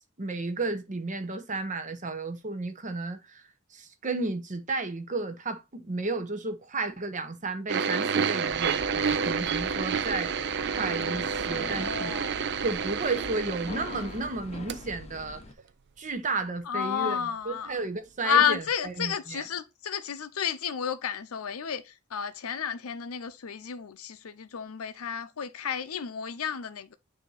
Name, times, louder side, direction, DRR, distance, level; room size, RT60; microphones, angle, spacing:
voice 1, 0.2-3.4 3.7-10.3 10.8-12.1 12.6-15.4 16.0-19.5, right 3 dB, 35° right, 0.8 m, -33 dB
sound 1, 7.7-14.4 14.7-14.8 15.6-15.7, right 6 dB, 50° right, 0.4 m, -29 dB
sound 2, 8.5-15.5, left 2 dB, 30° left, 0.8 m, -44 dB
voice 2, 11.5-12.4 16.7-17.7 18.2-26.9, left 7 dB, 90° left, 0.6 m, -31 dB
6.6 x 2.8 x 5.5 m
head